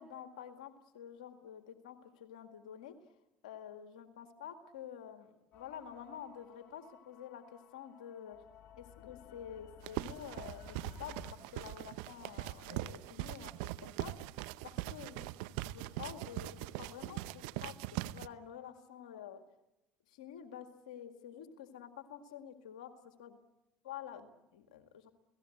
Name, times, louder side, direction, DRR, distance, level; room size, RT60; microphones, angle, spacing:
voice 1, 0.0-2.9 3.4-8.4 8.8-14.2 14.6-15.2 15.6-19.4 20.1-23.4 23.9-25.1, left 9 dB, 90° left, 7 dB, 2.0 m, -49 dB
sound 1, 5.5-11.3, left 8 dB, 55° left, 2.4 m, -56 dB
sound 2, 9.8-18.3, right 16 dB, 75° right, 0.8 m, -41 dB
29.0 x 18.0 x 7.9 m, 0.92 s
hypercardioid pair, 75°, 4 cm